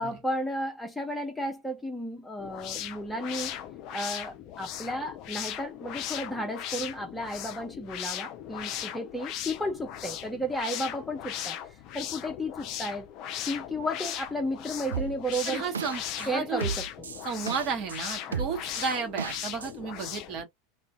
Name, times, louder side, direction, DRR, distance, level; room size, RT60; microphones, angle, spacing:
voice 1, 0.0-3.6 3.9-11.6 11.9-13.1 13.5-15.7 16.3-17.1 18.3-18.4, equal, 5° left, 0.8 m, -33 dB
sound 1, 2.4-20.4, left 11 dB, 45° left, 0.4 m, -38 dB
sound 2, 14.9-16.3 16.6-18.0 18.3-19.7, right 6 dB, 75° right, 0.3 m, -34 dB
voice 2, 15.5-16.6 17.2-20.5, right 5 dB, 40° right, 1.0 m, -33 dB
2.5 x 2.1 x 3.7 m
figure-of-eight pair, 80°, 0 cm